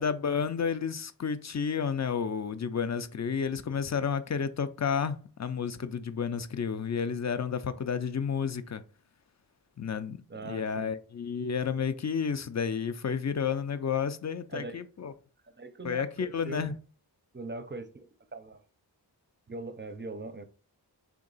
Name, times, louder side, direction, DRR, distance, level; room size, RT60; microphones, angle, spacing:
voice 1, 0.0-8.8 9.8-10.2 10.4-15.1 15.8-16.7, left 6 dB, 40° left, 0.4 m, -31 dB
voice 2, 10.3-10.9 14.5-14.8 15.6-16.7 17.3-18.6 19.5-20.4, right 3 dB, 25° right, 0.5 m, -41 dB
3.6 x 2.8 x 3.9 m
wide cardioid pair, 45°, 42 cm